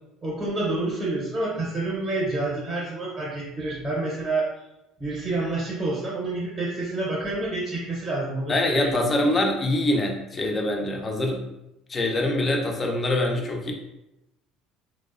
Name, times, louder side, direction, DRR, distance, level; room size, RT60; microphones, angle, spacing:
voice 1, 0.2-4.5 5.0-9.4, right 2 dB, 20° right, -5 dB, 0.7 m, -28 dB
voice 2, 8.5-11.4 11.9-13.7, left 1 dB, 25° left, 2 dB, 0.4 m, -24 dB
2.5 x 2.0 x 2.4 m, 0.91 s
cardioid pair, 120°, 0 cm